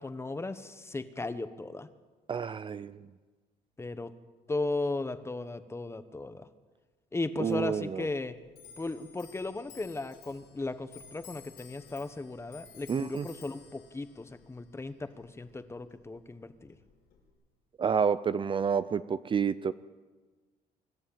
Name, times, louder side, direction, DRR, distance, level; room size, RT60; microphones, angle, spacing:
voice 1, 0.0-1.9 3.8-4.1 4.5-6.5 7.1-8.4 8.8-16.8, left 2 dB, 15° left, 11 dB, 1.3 m, -36 dB
voice 2, 2.3-3.0 7.4-8.1 12.9-13.3 17.8-19.7, right 6 dB, 30° right, 14 dB, 0.5 m, -29 dB
Clock, 7.4-17.3, left 7 dB, 85° left, 5.5 m, -55 dB
24.5 x 12.5 x 9.0 m, 1.3 s
cardioid pair, 110°, 17 cm